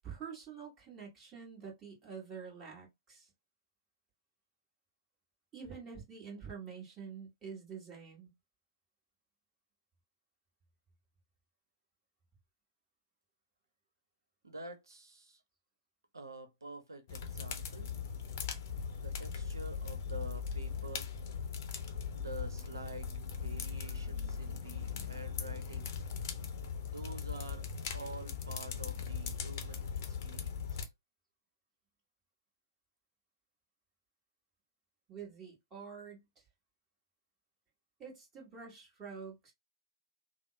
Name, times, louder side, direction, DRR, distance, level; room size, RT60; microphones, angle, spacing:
voice 1, 0.0-3.3 5.5-8.3 35.1-36.2 38.0-39.5, right 6 dB, 20° right, 1.6 m, -47 dB
voice 2, 14.4-15.4 16.1-17.9 18.9-21.1 22.1-26.0 26.8-27.7 27.9-30.9, right 2 dB, 75° right, 0.8 m, -48 dB
sound 1, 17.1-30.9, left 6 dB, 45° left, 0.6 m, -39 dB
3.3 x 2.0 x 2.5 m
figure-of-eight pair, 120°, 2 cm